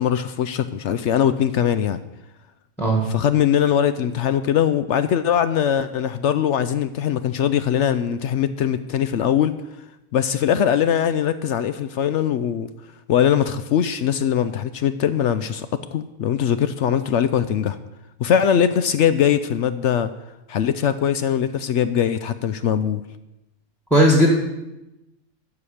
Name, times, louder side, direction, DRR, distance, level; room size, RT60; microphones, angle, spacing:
voice 1, 0.0-2.0 3.1-9.5 10.1-12.7 13.1-17.8 18.2-20.1 20.5-23.0, left 9 dB, 70° left, 11 dB, 0.8 m, -21 dB
voice 2, 23.9-24.3, equal, ahead, 1 dB, 1.4 m, -15 dB
13.5 x 4.8 x 8.7 m, 0.96 s
omnidirectional pair, 1.4 m